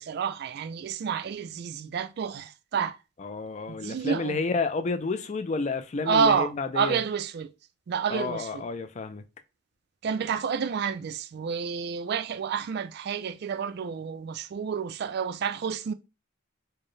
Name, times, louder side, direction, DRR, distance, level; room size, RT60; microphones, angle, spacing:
voice 1, 0.0-3.0 3.7-4.4 6.1-7.5 7.9-8.6 10.0-15.9, right 6 dB, 55° right, 0.3 m, -29 dB
voice 2, 3.2-7.0 8.1-9.2, left 4 dB, 35° left, 0.4 m, -30 dB
4.4 x 2.1 x 3.1 m
head